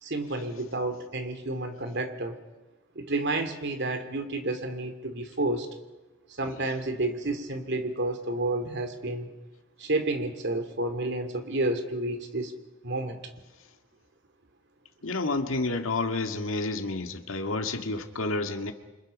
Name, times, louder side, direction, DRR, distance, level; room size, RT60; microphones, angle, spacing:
voice 1, 0.0-2.4 2.9-5.7 6.3-9.3 9.8-12.5 12.8-13.2, right 2 dB, 60° right, 7 dB, 2.9 m, -30 dB
voice 2, 15.0-18.7, left 3 dB, 80° left, 6 dB, 2.0 m, -30 dB
29.0 x 26.5 x 5.3 m, 1.2 s
head